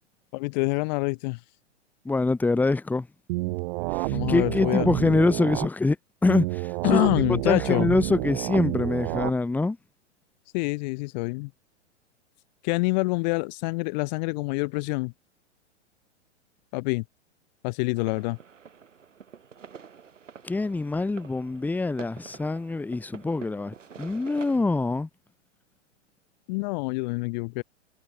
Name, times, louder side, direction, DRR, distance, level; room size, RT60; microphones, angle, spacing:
voice 1, 0.3-1.4 4.1-4.9 6.8-7.9 10.5-11.5 12.6-15.1 16.7-17.0 17.6-18.4 26.5-27.6, left 28 dB, 35° left, 0.8 m, -26 dB
voice 2, 2.0-3.1 4.3-6.0 6.2-7.1 7.5-9.8 20.4-25.1, left 3 dB, 5° left, 1.1 m, -24 dB
sound 1, 3.3-5.7 6.3-9.3, right 24 dB, 45° right, 3.6 m, -29 dB
sound 2, 18.0-24.6, right 7 dB, 85° right, 4.4 m, -47 dB
hypercardioid pair, 125°, 37 cm